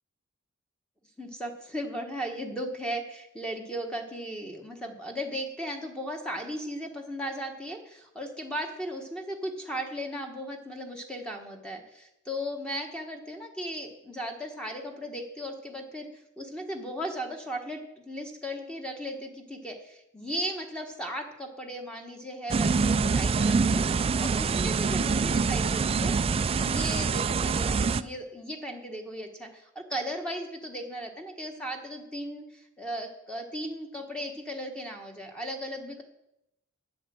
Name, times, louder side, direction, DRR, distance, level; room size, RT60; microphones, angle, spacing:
voice 1, 1.2-26.2 26.5-36.0, equal, 5° left, 3 dB, 1.2 m, -36 dB
sound 1, 22.5-28.0, right 4 dB, 30° right, 0.3 m, -25 dB
8.7 x 7.7 x 7.5 m, 0.84 s
head